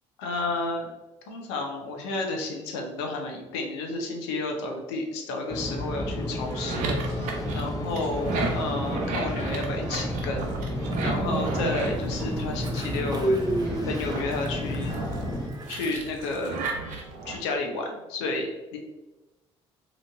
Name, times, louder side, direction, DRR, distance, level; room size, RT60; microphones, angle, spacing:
voice 1, 0.2-0.9 1.3-10.5 11.0-13.4 13.9-14.9 15.7-16.6 17.3-18.8, left 3 dB, 90° left, 2 dB, 0.6 m, -31 dB
sound 1, 5.5-15.5, left 1 dB, 20° left, 0.8 m, -32 dB
sound 2, 6.3-13.0 13.5-17.4, right 3 dB, 70° right, 0.7 m, -34 dB
Train, 10.9-16.2, right 1 dB, 30° right, 0.7 m, -32 dB
2.9 x 2.5 x 3.3 m, 1.1 s
hypercardioid pair, 60°, 14 cm